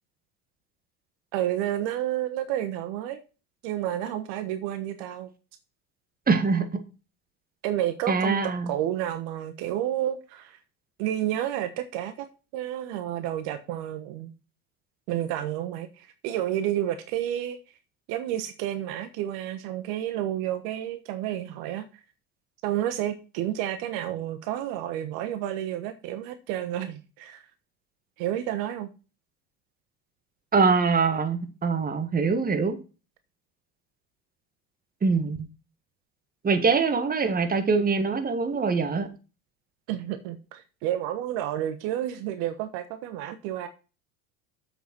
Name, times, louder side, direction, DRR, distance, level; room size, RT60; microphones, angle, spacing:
voice 1, 1.3-3.2 3.6-5.3 7.6-10.6 11.0-12.3 12.5-14.3 15.1-17.6 18.1-21.9 22.6-27.4 28.2-28.9 39.9-43.7, right 12 dB, 60° right, 1.2 m, -30 dB
voice 2, 6.3-6.8 8.1-8.7 30.5-32.8 35.0-35.4 36.4-39.1, right 4 dB, 20° right, 1.8 m, -23 dB
7.6 x 6.8 x 6.0 m
hypercardioid pair, 95°, 42 cm